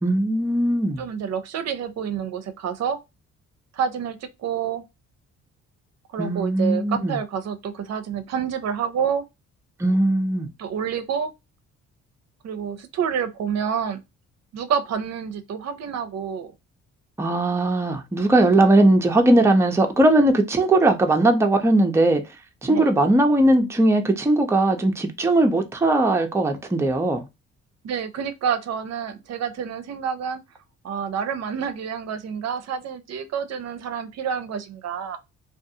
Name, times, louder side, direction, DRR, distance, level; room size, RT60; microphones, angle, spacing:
voice 1, 0.0-1.0 6.2-7.2 9.8-10.5 17.2-22.2 22.6-27.2, right 2 dB, 10° right, 0.5 m, -19 dB
voice 2, 1.0-3.0 3.7-4.8 6.1-9.2 10.6-11.3 12.4-14.0 14.5-16.5 22.7-22.9 27.8-30.4 30.8-35.2, right 7 dB, 60° right, 0.5 m, -28 dB
2.4 x 2.4 x 2.6 m
cardioid pair, 90°, 30 cm